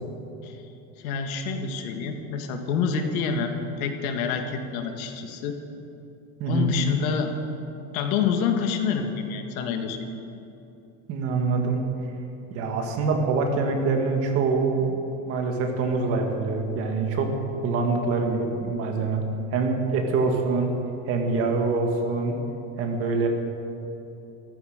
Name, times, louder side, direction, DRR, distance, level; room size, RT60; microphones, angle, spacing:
voice 1, 1.0-5.6 6.5-7.3 7.9-10.1, left 6 dB, 85° left, 5 dB, 1.9 m, -27 dB
voice 2, 6.4-6.7 11.1-11.8 12.5-19.2 19.5-20.7 21.1-22.4 22.8-23.3, right 4 dB, 35° right, 3 dB, 1.8 m, -25 dB
14.0 x 14.0 x 6.6 m, 2.9 s
cardioid pair, 175°, 41 cm